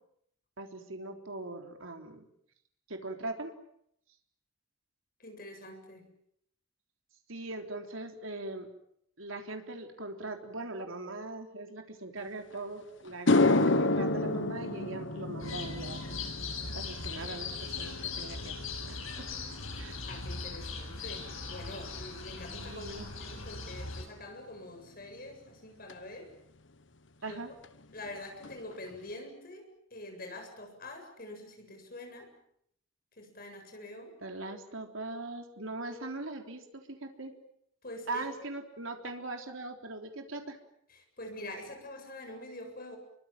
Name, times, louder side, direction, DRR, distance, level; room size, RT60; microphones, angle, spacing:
voice 1, 0.6-2.2 2.9-3.6 7.3-8.7 9.2-16.3 16.7-19.1 19.8-20.1 22.5-23.1 27.2-27.5 34.2-37.3 38.1-40.6, right 2 dB, 75° right, 4 dB, 3.6 m, -41 dB
voice 2, 5.2-6.1 20.1-26.3 27.2-27.4 27.9-32.3 33.2-34.2 37.8-38.3 40.9-43.0, left 1 dB, 45° left, 5 dB, 7.7 m, -45 dB
sound 1, 12.5-12.6 13.1-21.6 21.9-22.3 25.9-26.0 27.6-27.7 28.0-28.2 28.4-29.0, left 2 dB, 60° left, 1.2 m, -31 dB
sound 2, 15.4-24.0, left 4 dB, 80° left, 7.4 m, -40 dB
30.0 x 23.5 x 7.5 m, 0.72 s
head